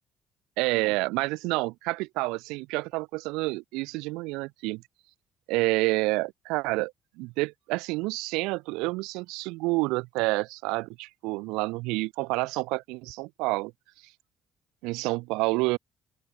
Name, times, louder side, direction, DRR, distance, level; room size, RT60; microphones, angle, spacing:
voice 1, 0.6-4.8 5.5-13.7 14.8-15.8, right 23 dB, 85° right, 7.4 m, -29 dB
open air
supercardioid pair, 70°, 0 cm